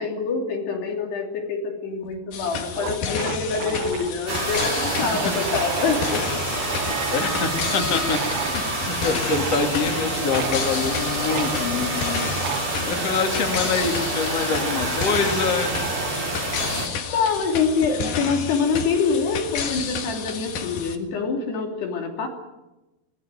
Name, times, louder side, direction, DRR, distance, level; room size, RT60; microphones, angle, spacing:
voice 1, 0.0-6.3 6.6-6.7 7.0-7.3 17.1-22.3, left 5 dB, 85° left, 2 dB, 5.1 m, -25 dB
sound 1, 2.1-2.2 2.5-2.6 2.7-7.6 8.0-8.6 9.3-9.8 10.3-10.6 11.3-11.5 12.4-12.7 13.5-16.2, right 9 dB, 85° right, 3.4 m, -34 dB
sound 2, 2.3-21.0, left 6 dB, 60° left, 3.2 m, -31 dB
sound 3, 4.3-16.9, right 2 dB, 40° right, 5.3 m, -27 dB
voice 2, 6.8-15.8, left 5 dB, 40° left, 3 dB, 3.4 m, -26 dB
23.5 x 19.0 x 9.2 m, 1.0 s
omnidirectional pair, 4.6 m